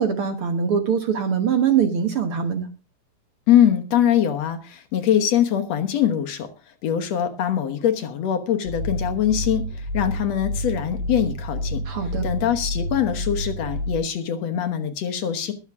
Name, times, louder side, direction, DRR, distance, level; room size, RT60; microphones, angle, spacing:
voice 1, 0.0-2.7 11.9-12.2, right 7 dB, 55° right, 7 dB, 1.8 m, -22 dB
voice 2, 3.5-6.5 6.8-11.8 12.2-15.5, left 10 dB, 65° left, 7 dB, 2.2 m, -22 dB
sound 1, 8.6-14.0, equal, 15° right, 5.2 m, -29 dB
21.5 x 7.3 x 3.6 m, 0.31 s
omnidirectional pair, 3.4 m